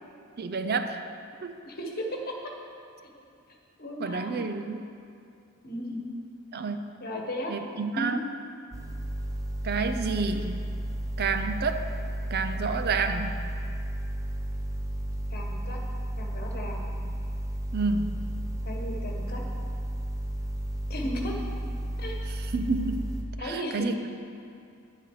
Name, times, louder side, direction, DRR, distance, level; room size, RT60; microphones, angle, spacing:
voice 1, 0.4-1.0 1.4-1.6 4.0-4.9 6.5-7.0 7.5-8.2 9.6-10.6 11.2-11.9 12.3-13.4 17.0-17.1 17.7-18.2 22.3-23.1 23.4-24.0, right 4 dB, 50° right, 7 dB, 0.5 m, -29 dB
voice 2, 3.8-4.4 5.6-6.0 7.0-7.5 7.9-8.1 15.3-15.8 16.2-16.8 18.6-19.4 20.9-21.3 22.0-22.2 23.4-24.0, equal, 45° left, 0 dB, 1.5 m, -35 dB
sound 1, 8.7-23.2, right 1 dB, 15° right, 0.8 m, -33 dB
10.5 x 8.9 x 4.8 m, 2.5 s
head